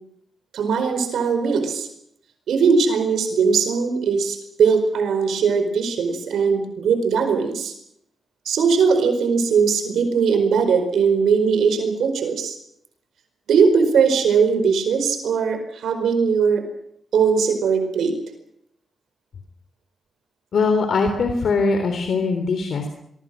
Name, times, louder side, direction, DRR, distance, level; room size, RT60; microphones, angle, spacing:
voice 1, 0.5-1.9 2.5-7.7 8.4-12.6 13.5-16.6 17.1-18.1, right 5 dB, 85° right, 7 dB, 4.7 m, -20 dB
voice 2, 20.5-22.9, left 4 dB, 70° left, 6 dB, 3.5 m, -21 dB
25.0 x 23.0 x 6.3 m, 0.74 s
cardioid pair, 95°, 0 cm